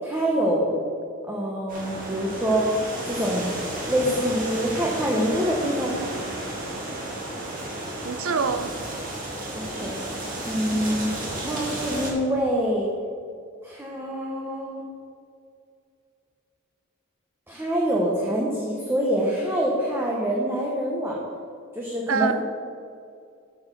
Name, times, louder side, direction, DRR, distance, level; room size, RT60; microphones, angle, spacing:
voice 1, 0.0-0.8 1.3-2.7 3.0-3.6 3.9-6.0 9.5-9.9 10.4-11.1 11.4-12.9 13.6-14.8 17.5-21.2 21.7-22.3, equal, 10° right, -3 dB, 0.9 m, -25 dB
sound 1, 1.7-12.1, right 1 dB, 40° right, 2.0 m, -32 dB
voice 2, 8.0-8.7 10.7-10.9 22.1-22.3, right 5 dB, 75° right, 9 dB, 0.6 m, -25 dB
8.5 x 5.9 x 5.8 m, 2.4 s
head